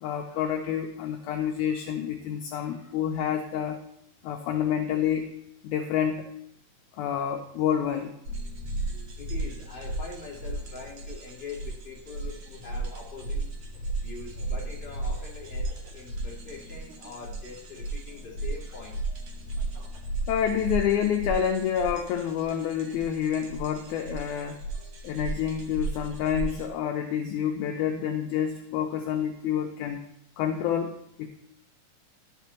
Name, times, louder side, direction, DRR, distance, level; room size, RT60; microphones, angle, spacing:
voice 1, 0.0-3.8 4.2-5.4 5.6-6.3 7.0-8.1 20.3-24.6 25.0-30.0 30.4-31.3, left 9 dB, 85° left, 3 dB, 1.7 m, -28 dB
sound 1, 8.3-26.6, right 2 dB, 60° right, 1.5 m, -35 dB
voice 2, 9.2-13.5 14.0-19.0, left 4 dB, 20° left, -6 dB, 1.5 m, -43 dB
11.5 x 5.7 x 3.0 m, 0.75 s
omnidirectional pair, 3.9 m